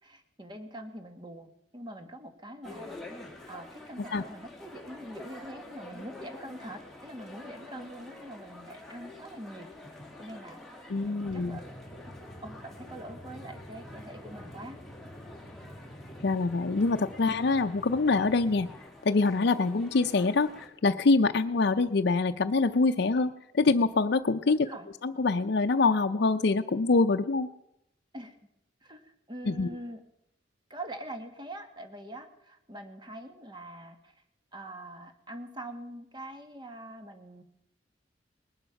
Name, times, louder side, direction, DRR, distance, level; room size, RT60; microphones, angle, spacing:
voice 1, 0.0-3.0 3.5-9.7 10.2-12.1 12.4-14.8 17.2-17.4 24.5-24.9 28.1-28.4 28.8-30.0 30.7-34.2 34.5-37.4, right 1 dB, 25° right, 6 dB, 1.6 m, -44 dB
sound 1, 2.6-20.7, left 2 dB, ahead, 2.4 m, -48 dB
voice 2, 10.9-11.6 16.2-18.7 19.0-24.7 25.0-27.5 29.5-29.7, left 3 dB, 60° left, 6 dB, 0.5 m, -25 dB
sound 2, 11.3-18.8, equal, 25° left, 2.5 m, -48 dB
20.0 x 11.5 x 5.8 m, 0.82 s
head